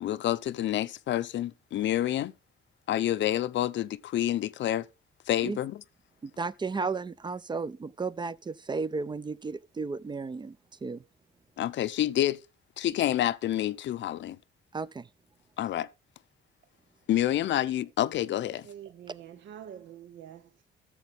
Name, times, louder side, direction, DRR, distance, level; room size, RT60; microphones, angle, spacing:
voice 1, 0.0-2.3 2.9-4.9 5.3-5.8 11.6-12.4 12.8-14.4 15.6-15.9 17.1-18.7, left 12 dB, 65° left, 0.6 m, -28 dB
voice 2, 6.2-11.0 14.7-15.1, right 4 dB, 20° right, 0.4 m, -34 dB
voice 3, 18.6-20.6, right 10 dB, 70° right, 0.7 m, -46 dB
13.5 x 7.0 x 3.4 m
cardioid pair, 90°, 20 cm